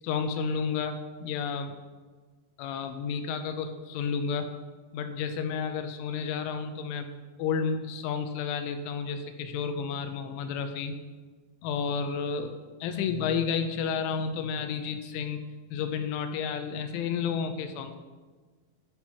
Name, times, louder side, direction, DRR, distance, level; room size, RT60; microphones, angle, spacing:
voice 1, 0.0-1.8 2.6-4.5 4.9-7.1 7.4-11.0 11.6-12.5 12.8-15.4 15.7-18.0, left 6 dB, 90° left, 7 dB, 3.2 m, -31 dB
12.5 x 4.5 x 5.7 m, 1.4 s
omnidirectional pair, 5.5 m